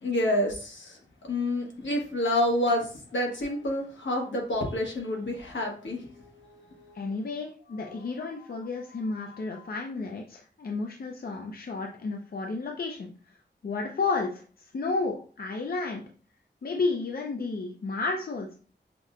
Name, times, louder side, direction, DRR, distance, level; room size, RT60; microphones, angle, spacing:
voice 1, 0.0-7.1 7.8-8.1 8.8-9.7, left 1 dB, 80° left, 0 dB, 1.1 m, -30 dB
voice 2, 6.9-13.1 13.6-16.0 16.6-18.5, left 3 dB, 55° left, 1 dB, 0.5 m, -32 dB
5.9 x 2.1 x 2.4 m, 0.41 s
wide cardioid pair, 80°, 19 cm